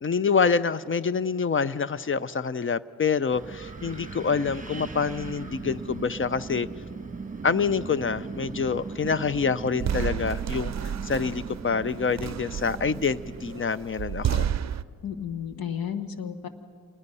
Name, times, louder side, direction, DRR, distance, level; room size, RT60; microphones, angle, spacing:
voice 1, 0.0-6.7 7.4-14.5, left 5 dB, 35° left, 16 dB, 0.5 m, -26 dB
Wind, 3.3-13.6, right 4 dB, 20° right, 1.2 m, -38 dB
sound 1, 9.8-14.8, right 9 dB, 50° right, 0.5 m, -31 dB
voice 2, 15.0-16.5, left 8 dB, 80° left, 9 dB, 1.3 m, -33 dB
27.0 x 20.5 x 5.5 m, 2.3 s
cardioid pair, 85°, 35 cm